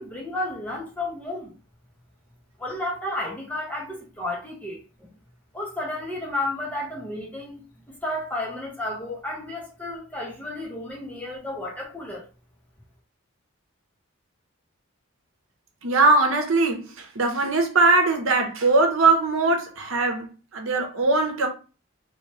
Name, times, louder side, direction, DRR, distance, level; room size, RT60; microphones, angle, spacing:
voice 1, 0.0-1.5 2.6-4.8 5.5-7.6 7.9-12.2, left 1 dB, 5° left, 0.8 m, -32 dB
voice 2, 15.8-20.3 20.5-21.5, right 3 dB, 70° right, 0.9 m, -21 dB
3.0 x 2.9 x 3.0 m
head